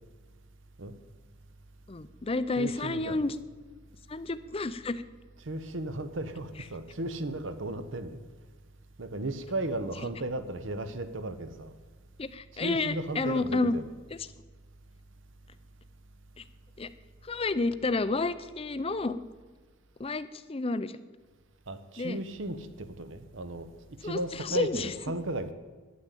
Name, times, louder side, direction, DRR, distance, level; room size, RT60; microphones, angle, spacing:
voice 1, 1.9-3.4 4.1-5.0 12.2-13.8 16.4-16.5 16.8-16.9 17.2-19.2 20.0-21.0 22.0-22.2 24.0-24.9, left 3 dB, 25° left, 0.5 m, -30 dB
voice 2, 2.6-3.2 5.4-8.2 9.0-11.7 12.5-13.8 21.7-23.7 24.0-25.5, right 1 dB, 65° right, 1.0 m, -35 dB
10.5 x 9.5 x 8.3 m
head